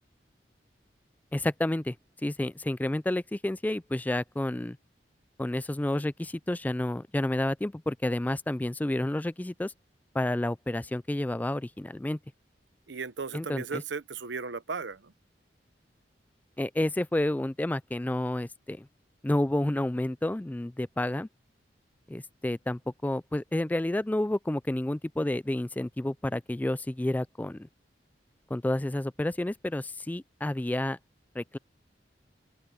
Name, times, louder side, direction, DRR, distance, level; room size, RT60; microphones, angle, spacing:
voice 1, 1.3-2.0 2.2-4.8 5.4-9.7 10.1-12.2 13.3-13.8 16.6-18.9 19.2-21.3 22.1-27.7 28.5-31.0 31.4-31.6, left 1 dB, 10° left, 0.3 m, -30 dB
voice 2, 12.9-15.1, right 5 dB, 80° right, 0.8 m, -36 dB
open air
head